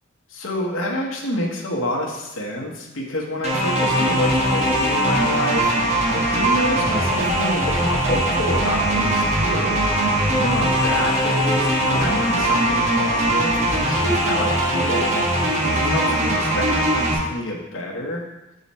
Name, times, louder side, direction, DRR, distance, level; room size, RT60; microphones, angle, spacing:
voice 1, 0.3-9.8 10.3-15.2 15.6-18.2, left 1 dB, 65° left, -1 dB, 1.0 m, -28 dB
sound 1, 3.4-17.1, right 1 dB, 30° right, 1.0 m, -20 dB
6.5 x 3.9 x 4.1 m, 0.98 s
head